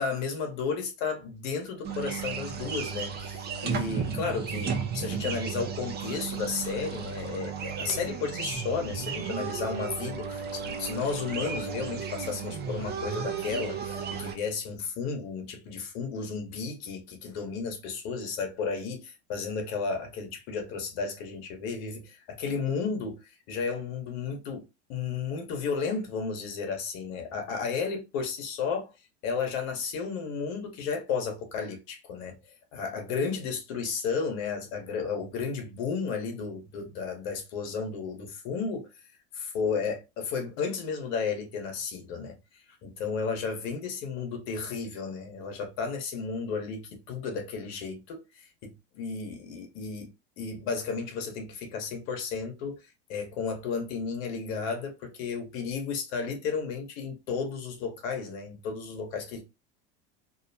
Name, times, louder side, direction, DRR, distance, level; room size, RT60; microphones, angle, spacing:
voice 1, 0.0-23.2 23.5-24.6 24.9-28.9 29.2-32.4 32.7-38.9 39.3-42.3 42.8-48.2 48.6-50.1 50.4-52.7 53.1-59.4, left 5 dB, 65° left, 1.1 m, -33 dB
sound 1, 1.8-14.4, right 6 dB, 30° right, 0.6 m, -34 dB
2.6 x 2.1 x 2.6 m
hypercardioid pair, 100°, 34 cm